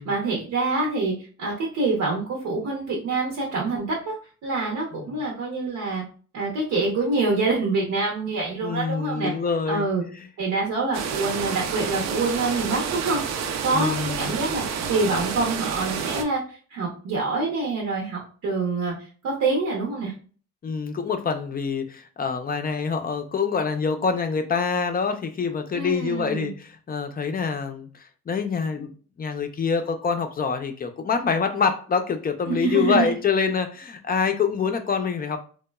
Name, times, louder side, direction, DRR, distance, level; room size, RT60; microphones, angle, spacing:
voice 1, 0.0-4.2 4.4-6.0 6.3-9.3 9.7-10.0 10.4-13.2 13.6-18.9 19.2-20.1 25.7-26.5 32.5-33.1, right 3 dB, 80° right, -2 dB, 0.8 m, -26 dB
voice 2, 8.6-9.9 13.7-14.4 20.6-28.9 29.2-35.4, left 5 dB, 30° left, 7 dB, 0.4 m, -26 dB
sound 1, 10.9-16.2, right 7 dB, 65° right, 0.5 m, -29 dB
2.9 x 2.2 x 2.2 m, 0.40 s
cardioid pair, 90°, 30 cm